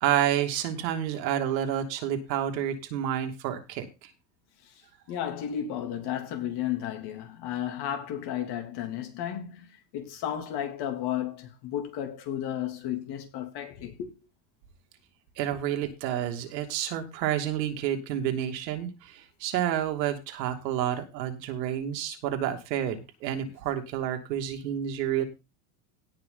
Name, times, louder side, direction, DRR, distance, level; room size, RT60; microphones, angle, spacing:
voice 1, 0.0-4.1 15.4-25.3, right 10 dB, 85° right, 2.8 m, -29 dB
voice 2, 5.1-14.1, left 10 dB, 50° left, 3.2 m, -33 dB
17.5 x 5.9 x 4.1 m
supercardioid pair, 135°, 49 cm